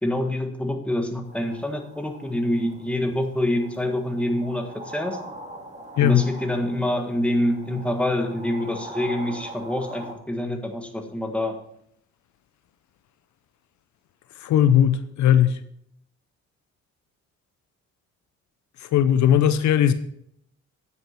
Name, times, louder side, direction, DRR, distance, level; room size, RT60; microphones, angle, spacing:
voice 1, 0.0-5.2 6.0-11.6, left 1 dB, 5° left, 4 dB, 1.6 m, -26 dB
sound 1, 1.2-10.1, right 1 dB, 20° right, 2.3 m, -42 dB
voice 2, 14.3-15.6 18.8-19.9, left 10 dB, 70° left, 12 dB, 0.7 m, -18 dB
9.1 x 8.4 x 4.4 m, 0.71 s
cardioid pair, 90°, 30 cm